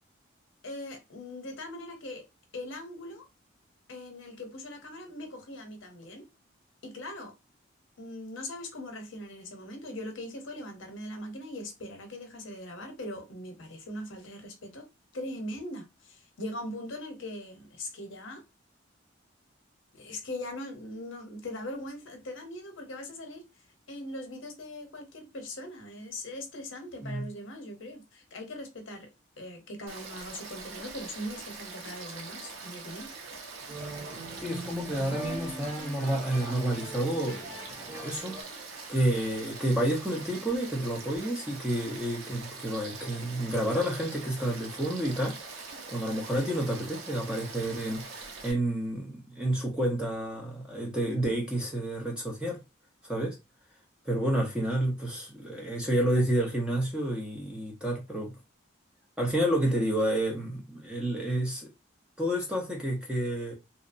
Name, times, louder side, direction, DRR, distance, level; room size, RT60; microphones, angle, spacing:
voice 1, 0.6-2.3 2.5-3.2 3.9-6.3 6.8-7.3 8.0-14.8 15.1-18.4 19.9-23.4 23.9-29.1 29.4-33.1, left 1 dB, 75° left, 0.7 m, -40 dB
Frog / Stream, 29.9-48.5, right 4 dB, 85° right, 0.6 m, -43 dB
sound 1, 33.6-38.4, right 1 dB, 20° right, 1.1 m, -41 dB
voice 2, 34.4-38.4 38.9-45.6 45.9-52.6 53.0-53.4 54.1-58.3 59.2-61.7 62.2-63.5, right 1 dB, 5° right, 0.4 m, -30 dB
2.7 x 2.0 x 2.5 m
head